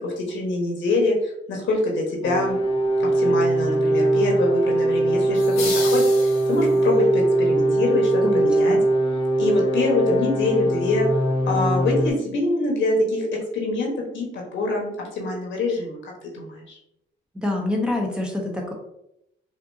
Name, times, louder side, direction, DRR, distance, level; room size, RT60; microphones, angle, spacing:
voice 1, 0.0-2.6 3.0-8.8 9.4-11.1 11.5-13.3 13.5-16.0 16.3-16.8, left 2 dB, 70° left, -1 dB, 1.4 m, -24 dB
sound 1, 2.2-12.1, right 1 dB, 25° left, 0.9 m, -21 dB
sound 2, 5.3-6.9, left 4 dB, 90° left, 1.2 m, -32 dB
voice 2, 8.2-8.8 17.4-18.7, left 2 dB, 5° right, -1 dB, 0.9 m, -26 dB
5.1 x 2.6 x 2.8 m, 0.80 s
cardioid pair, 90°, 20 cm